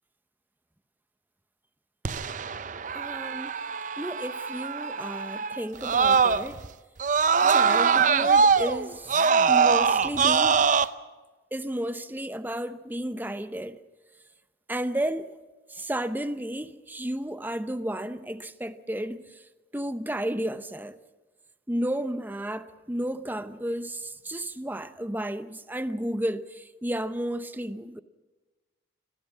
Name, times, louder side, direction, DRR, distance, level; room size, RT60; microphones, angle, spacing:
Screaming, 2.0-6.7 7.0-10.8, right 5 dB, 45° right, 0.6 m, -23 dB
voice 1, 2.9-3.6 4.0-6.6 7.5-10.7 11.5-13.8 14.7-15.4 15.7-19.2 19.7-20.9 21.7-28.0, right 1 dB, 10° right, 0.8 m, -32 dB
27.0 x 15.5 x 7.4 m
head